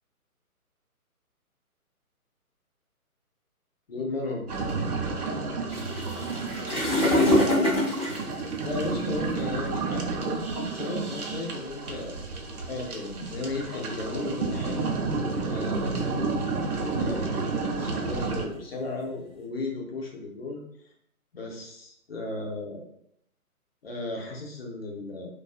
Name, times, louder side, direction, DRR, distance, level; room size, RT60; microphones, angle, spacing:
voice 1, 3.9-4.7 8.6-12.2 12.7-14.9 15.4-16.1 17.0-20.6 21.3-22.9 23.8-25.3, left 2 dB, 45° left, 0 dB, 0.6 m, -35 dB
sound 1, 4.5-18.4, right 4 dB, 85° right, 0.7 m, -31 dB
sound 2, 5.7-9.2 10.0-10.2 10.9-11.0 11.3-11.5 12.1-12.5 13.4-14.5 14.9-15.5 15.9-16.2 16.6-19.4, left 1 dB, 5° left, 0.8 m, -26 dB
2.3 x 2.3 x 2.3 m, 0.70 s
figure-of-eight pair, 140°, 44 cm